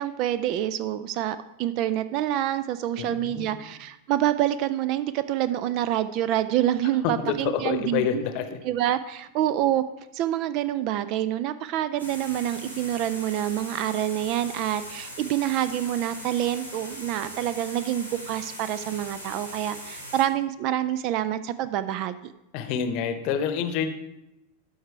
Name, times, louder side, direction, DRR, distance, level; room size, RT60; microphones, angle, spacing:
voice 1, 0.0-8.2 8.6-9.8 10.1-22.3, right 12 dB, 40° right, 13 dB, 0.4 m, -27 dB
voice 2, 3.0-3.6 7.0-8.6 22.5-23.9, left 8 dB, 45° left, 9 dB, 0.9 m, -28 dB
sound 1, 12.0-20.2, equal, 80° right, 1.9 m, -40 dB
12.5 x 4.8 x 4.5 m, 0.89 s
figure-of-eight pair, 90°, 0 cm